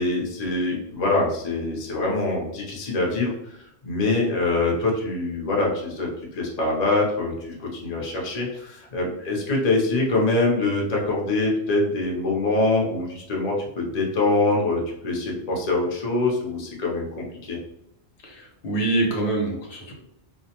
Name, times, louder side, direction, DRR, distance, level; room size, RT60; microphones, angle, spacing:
voice 1, 0.0-17.6, left 2 dB, 45° left, -2 dB, 0.7 m, -24 dB
voice 2, 18.2-19.9, right 2 dB, 90° left, -1 dB, 1.1 m, -25 dB
2.5 x 2.0 x 2.8 m, 0.80 s
omnidirectional pair, 1.1 m